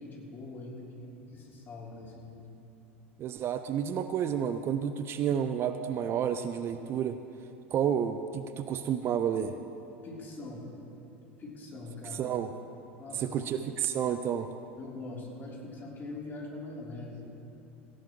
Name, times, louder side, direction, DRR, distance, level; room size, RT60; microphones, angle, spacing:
voice 1, 0.0-2.5 10.0-10.7 11.3-12.3 13.0-13.5 14.8-17.3, left 2 dB, 30° left, -3 dB, 3.5 m, -43 dB
voice 2, 3.2-7.2 7.7-9.5 12.1-12.5 13.1-14.5, right 8 dB, 35° right, 10 dB, 0.5 m, -30 dB
17.5 x 16.0 x 3.1 m, 2.8 s
figure-of-eight pair, 75°, 7 cm